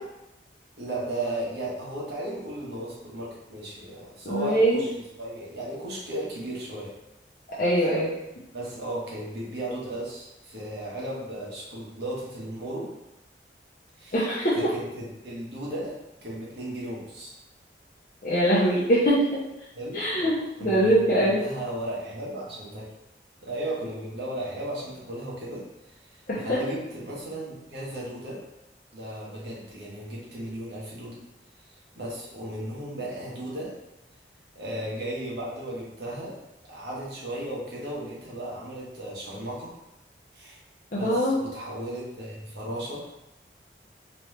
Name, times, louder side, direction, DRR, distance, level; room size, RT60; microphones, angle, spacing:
voice 1, 0.8-4.9 5.2-6.9 8.5-12.9 14.0-14.2 14.5-17.3 19.7-20.3 20.6-22.9 23.4-25.6 26.1-28.4 28.9-31.2 31.9-33.7 34.5-36.3 36.7-39.7 40.3-40.6 41.0-43.0, right 1 dB, 70° right, -5 dB, 1.2 m, -35 dB
voice 2, 4.3-4.8 7.6-8.1 14.1-14.7 18.2-19.4 19.9-21.4 26.3-26.6 40.9-41.4, right 1 dB, 50° left, -7 dB, 0.7 m, -23 dB
3.0 x 3.0 x 3.2 m, 0.91 s
head